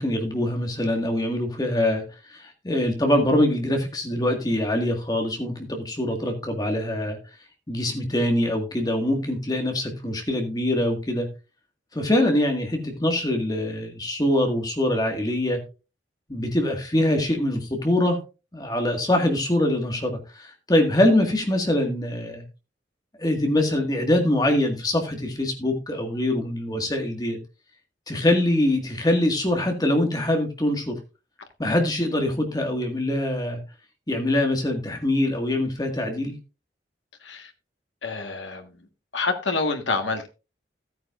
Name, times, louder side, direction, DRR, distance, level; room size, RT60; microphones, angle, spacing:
voice 1, 0.0-2.0 2.3-7.2 7.7-11.3 11.9-15.6 16.3-18.2 18.5-22.4 23.2-27.4 28.1-31.0 31.6-33.6 34.1-36.3, left 1 dB, 20° left, 1.9 m, -23 dB
voice 2, 38.0-38.7 39.1-40.3, left 3 dB, 90° left, 1.7 m, -27 dB
15.0 x 9.3 x 2.5 m
head